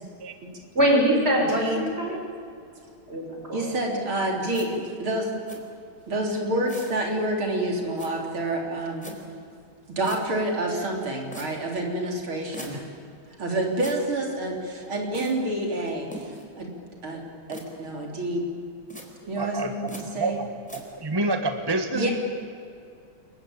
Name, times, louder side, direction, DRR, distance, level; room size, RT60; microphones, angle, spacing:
voice 1, 0.7-2.2 3.1-3.6, equal, 30° right, 1 dB, 5.8 m, -23 dB
voice 2, 1.5-1.8 3.5-5.3 6.1-9.1 9.9-12.9 13.4-16.7 17.0-17.2 17.5-18.4 19.3-20.4 21.9-22.1, right 1 dB, 75° right, 1 dB, 4.5 m, -28 dB
sound 1, 4.5-4.7 5.5-5.6 6.7-7.0 8.0-8.1 9.0-9.2 10.0-10.2 11.3-11.5 12.5-12.7 13.8-14.0 15.1-15.3 16.1-16.4 17.5-17.6 18.9-19.1 19.9-20.0 20.7-20.8, equal, 5° left, 4.0 m, -40 dB
voice 3, 19.2-19.7 20.1-22.1, right 2 dB, 15° right, 6 dB, 1.3 m, -28 dB
28.5 x 23.0 x 8.8 m, 2.4 s
omnidirectional pair, 2.3 m